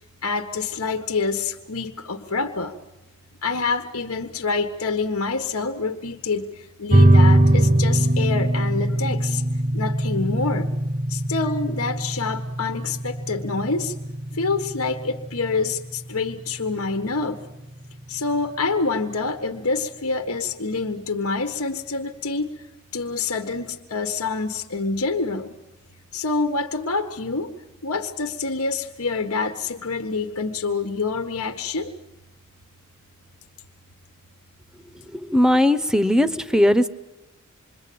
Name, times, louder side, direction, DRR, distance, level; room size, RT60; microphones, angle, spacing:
voice 1, 0.2-2.7 3.4-9.4 9.7-10.7 11.1-13.9 14.3-17.4 18.1-22.5 22.9-25.5 26.1-27.5 27.8-31.9, left 4 dB, 75° left, 6 dB, 1.5 m, -26 dB
sound 1, 6.9-17.9, right 1 dB, 35° right, 0.9 m, -22 dB
voice 2, 35.1-36.9, left 1 dB, 5° right, 12 dB, 0.9 m, -18 dB
27.0 x 23.0 x 8.7 m, 0.96 s
head